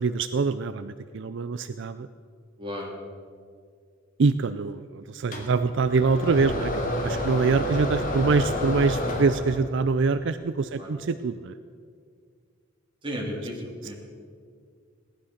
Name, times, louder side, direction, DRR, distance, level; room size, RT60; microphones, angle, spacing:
voice 1, 0.0-2.1 4.2-11.5, right 4 dB, 65° right, 11 dB, 0.5 m, -25 dB
voice 2, 2.6-2.9 10.7-10.9 13.0-13.9, equal, 25° right, -2 dB, 3.6 m, -34 dB
sound 1, 5.3-9.8, left 1 dB, 45° left, 2.7 m, -29 dB
18.5 x 11.5 x 6.5 m, 2.1 s
head